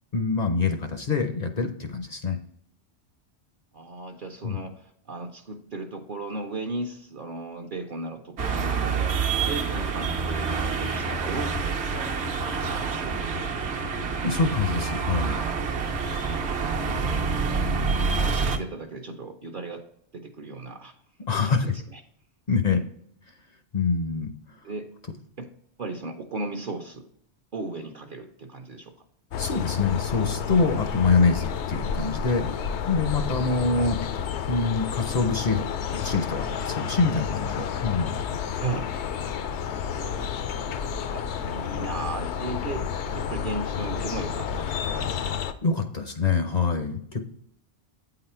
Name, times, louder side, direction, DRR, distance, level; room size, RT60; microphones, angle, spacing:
voice 1, 0.1-2.4 4.4-4.6 14.2-15.4 21.3-21.7 22.5-22.8 23.7-24.3 29.4-32.5 32.9-34.0 34.5-35.6 35.9-38.1 45.6-47.2, left 4 dB, 50° left, 6 dB, 0.6 m, -25 dB
voice 2, 3.7-9.2 9.4-11.6 12.0-13.9 16.3-19.9 20.1-20.9 21.4-22.0 22.7-22.8 24.6-24.9 25.4-25.5 25.8-27.1 27.5-28.9 33.8-33.9 36.7-37.0 38.6-38.9 39.9-45.2, right 2 dB, 55° right, 4 dB, 0.7 m, -37 dB
sound 1, 8.4-18.6, right 5 dB, 70° right, 1.1 m, -27 dB
sound 2, 29.3-45.5, left 7 dB, 75° left, 0.9 m, -30 dB
8.5 x 3.9 x 4.3 m, 0.70 s
omnidirectional pair, 1.2 m